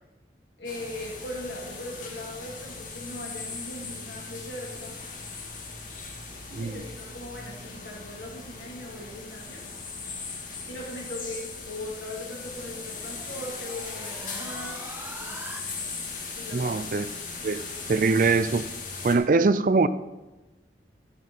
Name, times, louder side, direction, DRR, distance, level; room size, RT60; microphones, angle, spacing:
voice 1, 0.6-5.0 6.6-9.6 10.6-14.9 15.1-15.4 16.3-16.7, left 1 dB, 85° left, -3 dB, 3.1 m, -39 dB
sound 1, 0.6-19.1, left 4 dB, 45° left, 2.1 m, -39 dB
sound 2, 11.6-15.6, right 2 dB, 10° right, 0.7 m, -45 dB
voice 2, 16.5-17.1 17.4-17.6 17.9-18.7 19.0-19.9, right 3 dB, 50° right, 14 dB, 0.4 m, -22 dB
14.0 x 6.0 x 5.6 m, 1.1 s
head